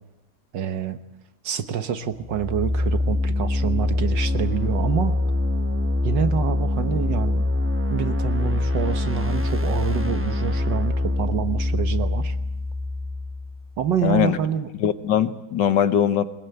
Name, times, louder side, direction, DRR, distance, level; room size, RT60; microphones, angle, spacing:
voice 1, 0.5-1.0 1.4-5.2 6.0-7.4 7.9-12.4 13.8-14.7, right 8 dB, 65° right, 10 dB, 1.8 m, -27 dB
sound 1, 2.2-14.0, left 2 dB, 15° right, 0.5 m, -24 dB
voice 2, 14.0-14.4 14.8-16.2, left 9 dB, 65° left, 12 dB, 1.7 m, -21 dB
21.5 x 20.5 x 9.2 m, 0.91 s
omnidirectional pair, 2.1 m